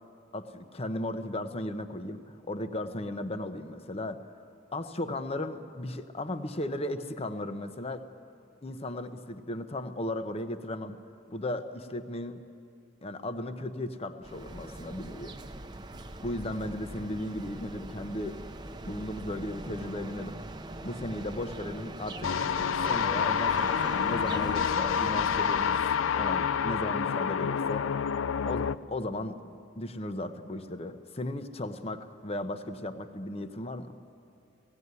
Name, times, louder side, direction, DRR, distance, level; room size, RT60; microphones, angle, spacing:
voice 1, 0.3-4.2 4.7-8.1 8.6-11.0 11.3-12.4 13.0-15.3 16.2-18.4 18.9-20.4 20.8-22.3 22.8-25.8 26.2-27.9 28.5-33.9, left 1 dB, 30° left, 9 dB, 0.8 m, -36 dB
sound 1, 14.2-25.7, right 2 dB, 20° right, 0.7 m, -42 dB
sound 2, 22.2-28.8, left 7 dB, 85° left, 0.4 m, -28 dB
17.0 x 16.5 x 9.5 m, 2.5 s
head